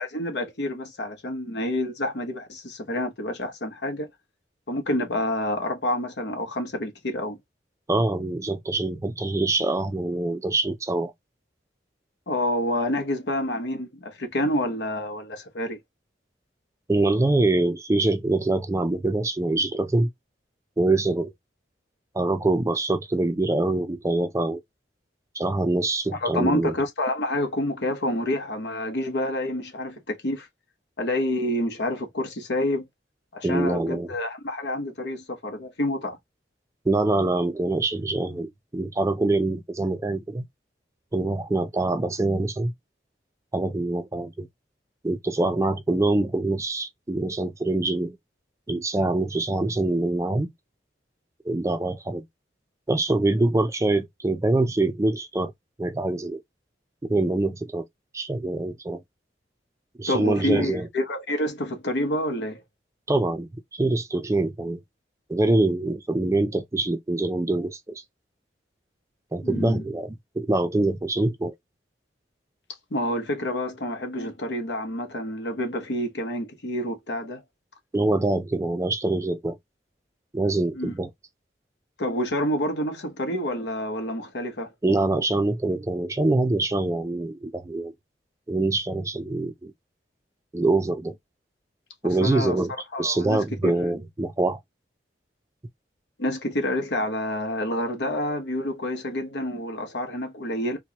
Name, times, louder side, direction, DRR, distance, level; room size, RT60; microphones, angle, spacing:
voice 1, 0.0-4.1 4.7-7.4 12.3-15.8 26.2-30.5 31.0-32.9 33.3-36.2 60.1-62.6 69.4-69.8 72.9-77.4 80.7-80.9 82.0-84.7 92.0-92.6 92.9-93.7 96.2-100.8, left 1 dB, 70° left, 1.0 m, -28 dB
voice 2, 7.9-11.1 16.9-20.1 20.8-21.3 22.1-24.6 25.3-26.7 33.4-34.1 36.9-40.5 41.1-42.7 43.5-44.5 45.0-48.2 48.7-50.5 51.4-52.3 52.9-55.5 55.8-56.4 57.0-57.9 58.1-59.0 60.0-60.9 63.1-64.8 65.3-67.8 69.3-71.5 77.9-79.6 80.3-81.1 84.8-87.9 88.5-89.7 90.5-91.1 92.0-92.7 93.0-94.6, right 2 dB, 15° right, 0.4 m, -24 dB
4.4 x 2.2 x 2.8 m
head